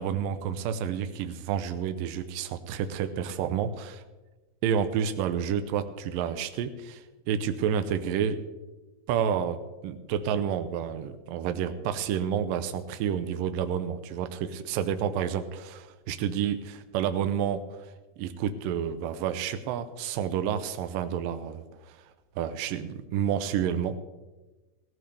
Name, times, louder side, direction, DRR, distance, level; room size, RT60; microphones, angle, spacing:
voice 1, 0.0-4.0 4.6-8.4 9.1-22.0 22.4-24.1, right 8 dB, 80° right, 9 dB, 2.0 m, -30 dB
16.5 x 14.5 x 3.4 m, 1.2 s
omnidirectional pair, 4.7 m